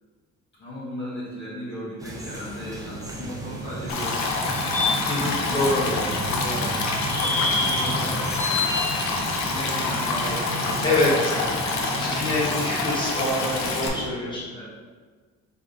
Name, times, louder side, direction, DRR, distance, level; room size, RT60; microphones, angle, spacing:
voice 1, 0.5-8.9 9.4-12.7 14.5-14.7, equal, 40° left, -8 dB, 1.1 m, -37 dB
sound 1, 2.0-14.1, left 1 dB, 10° right, 0.6 m, -30 dB
Stream, 3.9-13.9, left 3 dB, 70° left, 0.8 m, -27 dB
voice 2, 5.0-5.8 10.8-11.1 12.0-14.7, left 2 dB, 15° left, -6 dB, 1.4 m, -26 dB
3.5 x 3.1 x 4.0 m, 1.5 s
cardioid pair, 110°, 29 cm